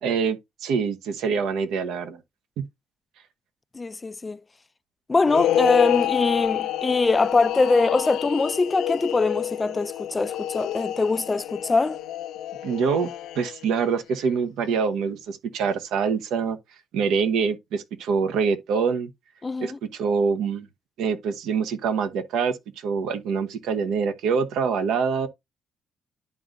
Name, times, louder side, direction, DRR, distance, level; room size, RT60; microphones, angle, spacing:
voice 1, 0.0-2.2 2.6-2.7 12.6-16.6 16.9-19.1 19.6-20.7 21.0-25.3, right 6 dB, 85° right, 0.9 m, -25 dB
voice 2, 3.7-4.4 5.1-12.0 19.4-19.8, left 3 dB, 25° left, 0.3 m, -23 dB
sound 1, 5.2-13.8, left 11 dB, 85° left, 0.5 m, -28 dB
11.0 x 3.8 x 2.6 m
cardioid pair, 90°, 0 cm